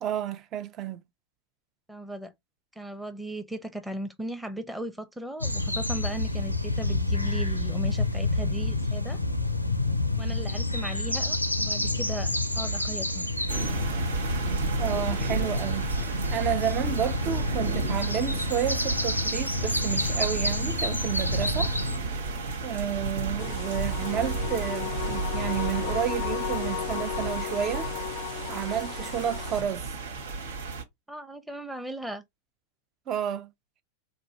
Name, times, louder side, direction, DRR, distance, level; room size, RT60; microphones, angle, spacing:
voice 1, 0.0-1.0 14.8-15.9 16.3-21.7 22.6-27.9 28.5-29.9 33.1-33.5, right 10 dB, 30° right, 0.7 m, -31 dB
voice 2, 1.9-2.3 2.8-9.2 10.2-13.3 31.1-32.2, right 1 dB, 5° right, 0.8 m, -37 dB
sound 1, 5.4-22.0, left 2 dB, 90° left, 0.5 m, -29 dB
sound 2, 13.5-30.8, right 3 dB, 65° right, 1.0 m, -32 dB
sound 3, 23.4-29.6, left 13 dB, 40° left, 0.5 m, -35 dB
4.1 x 2.5 x 4.4 m
figure-of-eight pair, 90°, 0 cm